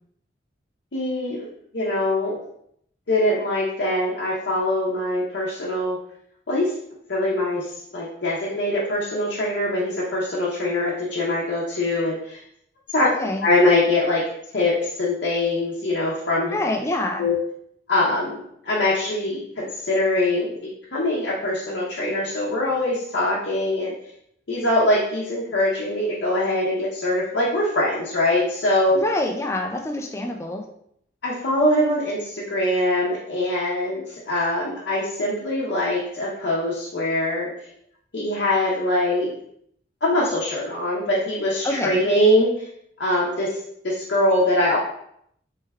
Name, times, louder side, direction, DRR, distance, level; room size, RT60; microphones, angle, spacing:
voice 1, 0.9-1.4 1.7-2.4 3.1-6.0 6.5-6.7 7.1-7.6 7.9-12.4 12.9-13.1 13.4-14.2 14.5-16.5 17.2-17.3 17.9-23.9 24.5-29.0 31.2-37.5 38.1-39.3 40.0-42.5 43.0-43.5 43.8-44.8, left 1 dB, 65° left, -6 dB, 0.7 m, -23 dB
voice 2, 13.0-13.4 16.5-17.2 28.9-30.6 41.6-42.0, left 1 dB, 15° left, 2 dB, 0.3 m, -26 dB
3.4 x 3.2 x 2.2 m, 0.70 s
head